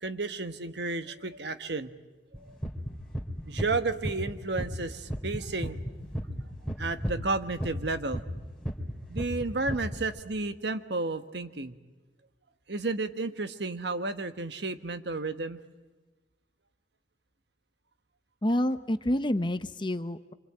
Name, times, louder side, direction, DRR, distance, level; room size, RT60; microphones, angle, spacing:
voice 1, 0.0-1.9 2.4-2.6 3.5-5.8 6.8-8.2 9.1-11.7 12.7-15.6, right 3 dB, 70° right, 9 dB, 1.4 m, -32 dB
sound 1, 2.3-4.3 4.6-8.4 8.7-10.0, equal, 5° left, 3.1 m, -33 dB
voice 2, 18.4-20.3, left 1 dB, 25° left, 11 dB, 0.8 m, -28 dB
26.5 x 25.5 x 8.8 m, 1.2 s
head